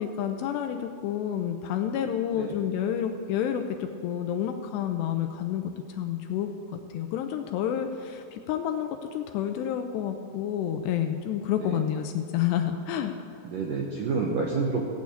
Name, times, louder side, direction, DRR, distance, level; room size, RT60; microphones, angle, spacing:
voice 1, 0.0-6.5 6.9-13.1, left 9 dB, 85° left, 6 dB, 2.6 m, -29 dB
voice 2, 11.5-11.8 13.4-14.8, right 4 dB, 75° right, -1 dB, 2.0 m, -29 dB
16.5 x 8.5 x 8.4 m, 2.6 s
omnidirectional pair, 5.4 m